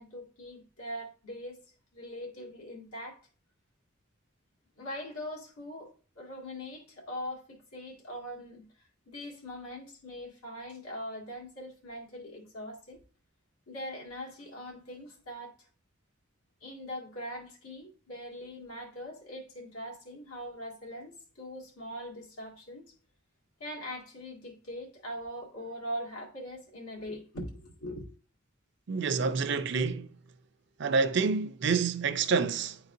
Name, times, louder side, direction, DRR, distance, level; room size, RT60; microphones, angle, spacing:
voice 1, 0.0-1.6 1.9-3.2 4.8-8.6 9.1-13.0 13.7-15.6 16.6-22.8 23.6-28.1, equal, 90° left, 2.0 m, -41 dB
voice 2, 28.9-30.1 30.8-32.8, right 5 dB, 55° right, 0.4 m, -28 dB
9.7 x 3.9 x 2.6 m
head